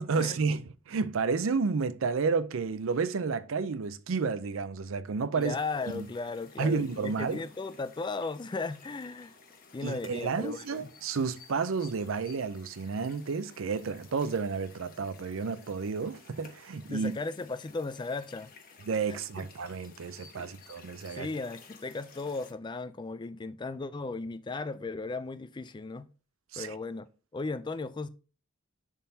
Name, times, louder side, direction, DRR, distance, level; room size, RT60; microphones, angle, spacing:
voice 1, 0.0-5.6 5.9-6.1 6.6-7.4 9.8-17.1 18.8-21.3 26.5-26.8, right 5 dB, 65° right, 0.5 m, -31 dB
sound 1, 5.4-22.5, left 5 dB, 45° left, 1.3 m, -55 dB
voice 2, 5.4-9.4 9.7-10.9 16.9-18.5 19.1-19.5 20.4-20.5 21.1-26.1 26.6-27.1 27.3-28.1, left 3 dB, 20° left, 0.3 m, -36 dB
10.5 x 3.7 x 2.8 m
head